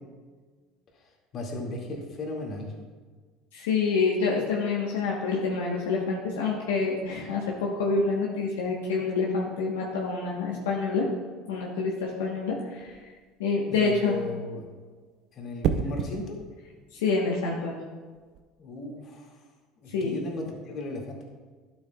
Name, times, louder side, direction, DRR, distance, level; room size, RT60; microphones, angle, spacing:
voice 1, 0.9-2.7 13.7-14.7 15.3-16.4 18.6-19.4 19.8-21.2, left 2 dB, 50° left, -1 dB, 2.1 m, -36 dB
voice 2, 3.5-11.1 11.5-13.0 13.4-14.2 16.9-17.7 19.9-20.1, left 4 dB, 80° left, -3 dB, 1.1 m, -27 dB
sound 1, 12.8-13.2 15.6-16.2 18.1-18.4, right 7 dB, 60° right, 0.6 m, -29 dB
11.5 x 7.7 x 2.3 m, 1.4 s
hypercardioid pair, 75°, 0 cm